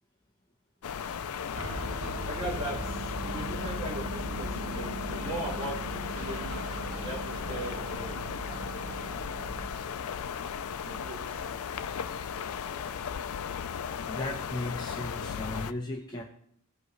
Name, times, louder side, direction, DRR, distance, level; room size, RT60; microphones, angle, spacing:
sound 1, 0.8-15.7, left 7 dB, 80° left, 0.4 m, -36 dB
sound 2, 1.5-9.7, right 2 dB, 75° right, 1.1 m, -39 dB
voice 1, 2.3-8.2 10.8-11.6, right 2 dB, 30° right, -7 dB, 4.0 m, -39 dB
voice 2, 14.1-16.2, left 1 dB, 20° left, -1 dB, 0.9 m, -36 dB
16.0 x 5.4 x 3.2 m, 0.69 s
head